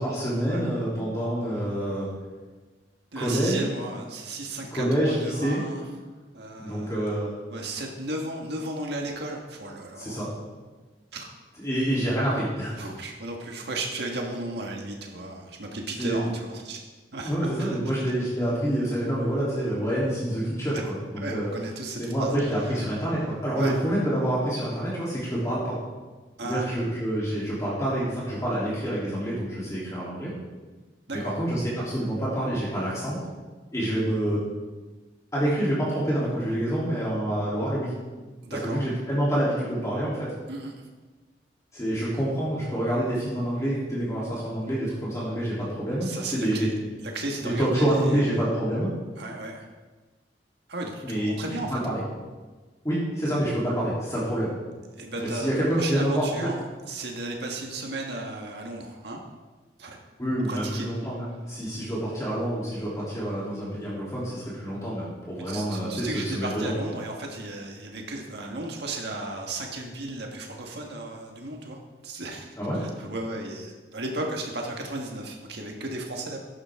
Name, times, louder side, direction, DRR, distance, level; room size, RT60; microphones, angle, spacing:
voice 1, 0.0-2.1 3.1-3.7 4.7-5.6 6.6-7.3 10.0-10.3 11.6-12.8 16.0-16.3 17.2-21.5 22.0-25.8 26.4-30.3 31.1-33.2 33.7-34.4 35.3-37.9 38.6-40.3 41.7-46.7 47.6-48.9 51.0-52.0 52.8-54.6 55.1-56.4 60.2-66.7 72.6-72.8, right 1 dB, 20° left, -8 dB, 3.3 m, -27 dB
voice 2, 3.1-5.8 6.3-7.1 7.5-10.2 11.1-11.3 12.8-16.8 17.1-17.8 21.2-22.3 22.6-22.7 23.6-23.7 26.4-26.7 31.1-31.3 38.4-38.8 40.5-40.8 46.0-46.7 47.0-48.3 49.2-49.7 50.7-51.8 55.0-55.5 55.8-56.6 56.9-59.2 59.8-60.0 60.5-60.9 65.4-71.8 72.0-72.5 72.7-76.4, right 2 dB, 65° right, 1 dB, 1.6 m, -34 dB
15.0 x 11.0 x 3.7 m, 1.3 s
head